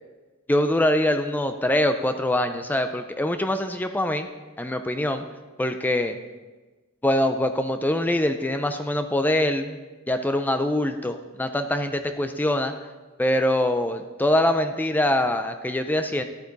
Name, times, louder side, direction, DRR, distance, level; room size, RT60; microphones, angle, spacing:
voice 1, 0.5-4.3 4.6-5.2 5.6-6.2 7.0-9.7 10.1-12.7 13.2-16.2, left 1 dB, 10° left, 8 dB, 0.4 m, -23 dB
12.0 x 8.4 x 4.0 m, 1.2 s
head